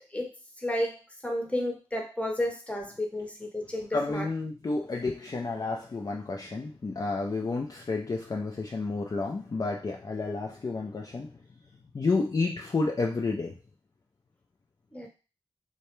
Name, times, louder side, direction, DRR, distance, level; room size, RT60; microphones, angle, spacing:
voice 1, 0.6-4.3 14.9-15.1, left 1 dB, 10° left, 1 dB, 0.8 m, -32 dB
voice 2, 3.9-11.3 11.9-13.5, left 3 dB, 35° left, 0 dB, 0.3 m, -30 dB
2.2 x 2.1 x 3.0 m, 0.32 s
cardioid pair, 40°, 11 cm